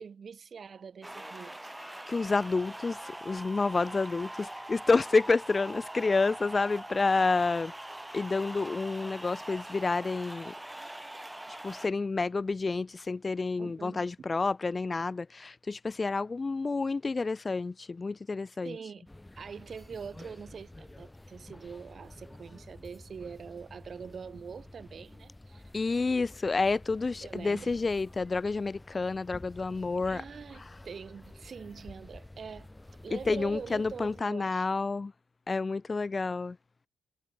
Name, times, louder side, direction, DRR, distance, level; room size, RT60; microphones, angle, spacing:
voice 1, 0.0-1.7 13.6-14.3 18.6-19.1 19.4-25.6 27.2-27.7 30.0-32.7 33.0-34.6, right 6 dB, 45° right, 3.4 m, -44 dB
sound 1, 1.0-11.9, right 1 dB, 10° right, 4.3 m, -43 dB
voice 2, 1.8-7.7 8.1-10.5 11.6-18.8 25.7-30.2 30.5-30.7 33.1-35.1 35.5-36.6, left 3 dB, 25° left, 0.8 m, -29 dB
sound 2, 19.1-34.2, left 1 dB, 10° left, 3.9 m, -50 dB
cardioid pair, 90°, 0 cm